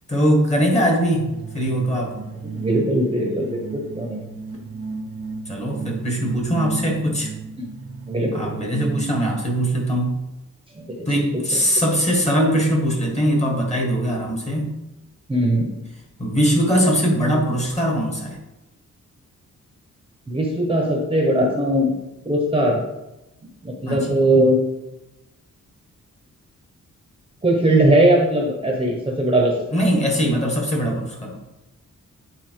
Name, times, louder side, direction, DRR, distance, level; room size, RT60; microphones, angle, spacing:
voice 1, 0.1-1.3 1.5-2.1 5.5-7.3 8.3-10.2 11.0-14.7 16.2-18.4 23.9-24.2 29.7-31.4, equal, 20° left, 0 dB, 1.6 m, -21 dB
sound 1, 1.2-9.8, right 4 dB, 50° right, 0.9 m, -34 dB
voice 2, 2.1-4.2 7.6-7.7 8.1-8.4 10.8-11.1 15.3-15.7 20.3-21.9 22.3-22.8 23.6-24.6 27.4-29.5, right 1 dB, 15° right, -1 dB, 1.0 m, -20 dB
8.7 x 4.2 x 4.6 m, 0.96 s
wide cardioid pair, 175°, 31 cm